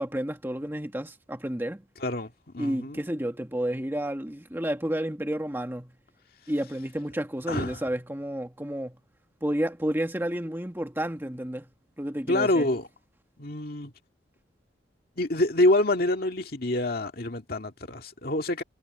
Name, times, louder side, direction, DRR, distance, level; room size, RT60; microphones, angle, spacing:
voice 1, 0.0-1.8 2.6-5.9 6.5-9.0 9.4-11.7 12.0-12.7, right 1 dB, 10° right, 1.6 m, -31 dB
voice 2, 2.0-3.0 7.5-7.8 12.3-12.9 13.4-13.9 15.2-18.6, left 1 dB, 55° left, 2.1 m, -26 dB
head